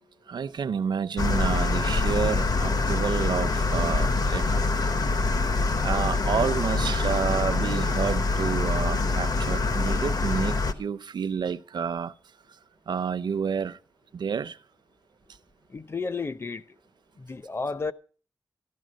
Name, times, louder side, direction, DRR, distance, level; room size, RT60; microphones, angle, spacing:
voice 1, 0.3-4.5 5.8-12.1 12.9-13.8 14.1-14.6, right 6 dB, 80° right, 0.7 m, -29 dB
sound 1, 1.2-10.7, left 3 dB, 60° left, 1.2 m, -25 dB
voice 2, 15.7-16.6 17.2-17.9, left 4 dB, 35° left, 0.7 m, -32 dB
14.0 x 11.5 x 6.3 m
wide cardioid pair, 130°, 7 cm